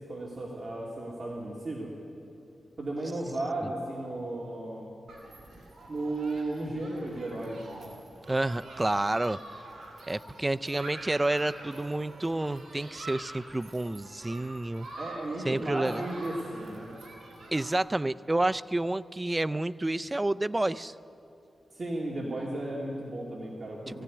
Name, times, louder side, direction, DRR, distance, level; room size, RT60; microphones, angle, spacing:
voice 1, 0.1-1.9 2.8-4.9 5.9-7.8 14.9-16.9 21.7-24.0, right 2 dB, 40° right, -3 dB, 2.5 m, -34 dB
Human group actions, 5.1-17.8, right 2 dB, 75° right, 4.2 m, -46 dB
voice 2, 8.3-9.4 10.1-14.9 15.4-16.1 17.5-20.9 23.9-24.0, right 2 dB, 15° right, 12 dB, 0.4 m, -29 dB
18.5 x 15.0 x 9.6 m, 2.6 s
wide cardioid pair, 130°, 0 cm